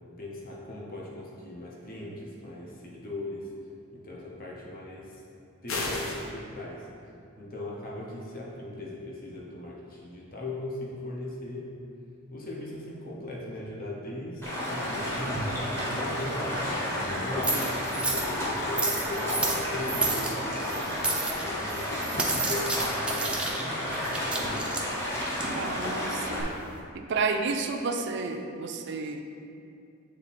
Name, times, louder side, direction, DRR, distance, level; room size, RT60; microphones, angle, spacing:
voice 1, 0.2-3.5 3.9-5.2 5.6-6.9 7.4-11.7 12.3-17.6 18.0-24.1, left 1 dB, 45° left, -4 dB, 0.9 m, -38 dB
sound 1, 5.7-6.3, left 2 dB, 80° left, 0.8 m, -32 dB
Stream, 14.4-26.4, left 1 dB, 10° left, 1.0 m, -31 dB
sound 2, 14.8-26.8, right 2 dB, 5° right, 0.5 m, -33 dB
voice 2, 25.5-26.6 26.9-29.2, right 4 dB, 55° right, 5 dB, 0.5 m, -31 dB
7.7 x 3.5 x 4.2 m, 2.5 s
head